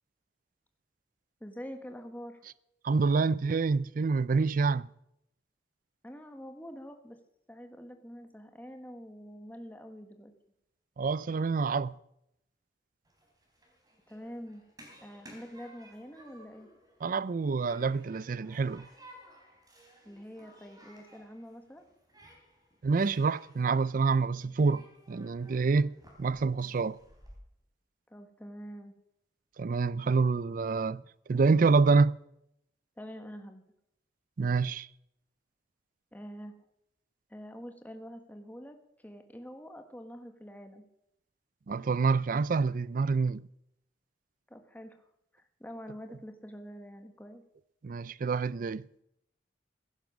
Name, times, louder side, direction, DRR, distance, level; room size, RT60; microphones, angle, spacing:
voice 1, 1.4-2.4 6.0-7.2 7.5-10.3 14.1-14.6 15.0-16.7 20.0-21.8 28.1-28.9 33.0-33.6 36.1-36.5 37.3-38.8 39.0-40.8 44.5-45.0 45.3-47.4, equal, 10° left, 1.4 m, -46 dB
voice 2, 2.8-4.9 11.0-12.0 17.0-18.9 22.8-27.0 29.6-31.0 31.3-32.2 34.4-34.9 41.7-43.4 47.8-48.9, right 4 dB, 50° right, 0.4 m, -27 dB
Human group actions, 13.0-27.3, equal, 20° right, 4.1 m, -57 dB
15.5 x 11.0 x 6.2 m
head